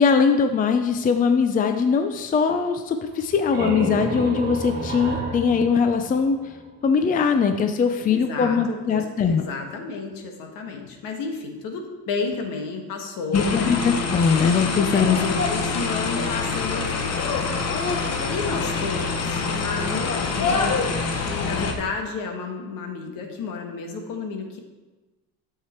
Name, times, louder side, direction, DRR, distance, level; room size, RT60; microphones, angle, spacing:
voice 1, 0.0-6.4 6.8-9.4 13.3-15.2, left 6 dB, 25° left, 7 dB, 0.5 m, -21 dB
sound 1, 3.1-6.8, right 2 dB, 25° right, 1.9 m, -31 dB
voice 2, 8.0-13.9 14.9-17.4 18.3-20.8 21.1-24.6, left 4 dB, 70° left, 3 dB, 1.6 m, -32 dB
sound 2, 13.3-21.7, left 4 dB, 45° left, 1.2 m, -25 dB
9.2 x 6.7 x 4.5 m, 1.2 s
cardioid pair, 125°, 35 cm